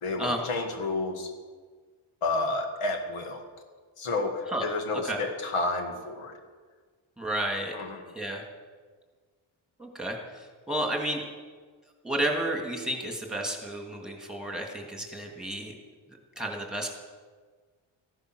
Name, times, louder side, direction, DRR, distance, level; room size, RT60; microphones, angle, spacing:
voice 1, 0.0-1.3 2.2-3.4 4.0-6.4 7.7-8.1, left 3 dB, 85° left, 4 dB, 2.0 m, -30 dB
voice 2, 7.2-7.8 8.1-8.4 9.8-11.2 12.0-15.7 16.4-16.9, right 1 dB, ahead, 1 dB, 2.6 m, -31 dB
14.5 x 10.5 x 6.4 m, 1.5 s
cardioid pair, 100°, 49 cm